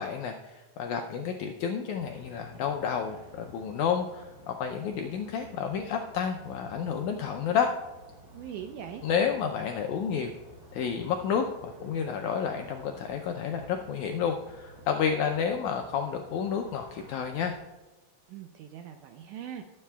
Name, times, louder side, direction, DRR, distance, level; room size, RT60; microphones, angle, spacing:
voice 1, 0.0-7.7 9.0-10.3 10.7-17.6, left 7 dB, 85° left, 4 dB, 1.7 m, -30 dB
sound 1, 1.9-17.6, right 1 dB, 30° right, 2.5 m, -52 dB
voice 2, 8.3-9.1 18.3-19.6, right 9 dB, 85° right, 6 dB, 1.8 m, -41 dB
19.0 x 7.5 x 2.3 m, 1.2 s
omnidirectional pair, 4.1 m